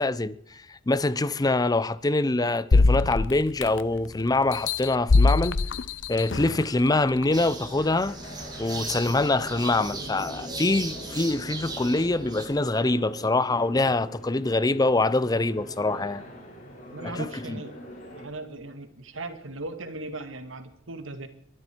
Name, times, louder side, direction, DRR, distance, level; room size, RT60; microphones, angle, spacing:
voice 1, 0.0-5.6 6.1-8.2 8.6-16.2 17.0-17.6, left 2 dB, 20° left, 0.5 m, -24 dB
sound 1, 2.7-4.0 4.5-6.6 7.2-7.3, left 3 dB, 65° left, 0.7 m, -22 dB
sound 2, 6.3-18.3, equal, 40° left, 4.9 m, -44 dB
sound 3, 7.3-12.5, right 3 dB, 20° right, 2.2 m, -37 dB
voice 2, 16.9-17.8 18.1-21.3, right 2 dB, 80° right, 1.9 m, -38 dB
22.5 x 12.5 x 4.5 m
head